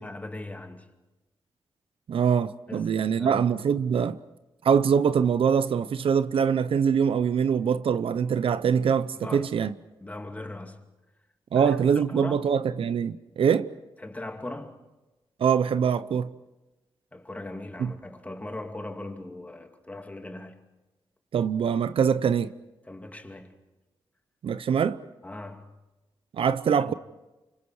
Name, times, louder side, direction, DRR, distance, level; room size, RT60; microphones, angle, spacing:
voice 1, 0.0-0.9 2.7-3.5 9.2-9.5 10.0-10.8 11.6-12.5 14.0-14.8 17.1-20.6 22.9-23.6 25.2-25.7 26.8-26.9, left 2 dB, 15° left, 2.5 m, -39 dB
voice 2, 2.1-4.2 4.6-9.7 11.5-13.7 15.4-16.3 17.8-17.9 21.3-22.5 24.4-25.0 26.3-26.9, right 7 dB, 75° right, 0.8 m, -23 dB
29.0 x 26.5 x 4.8 m
wide cardioid pair, 105°, 9 cm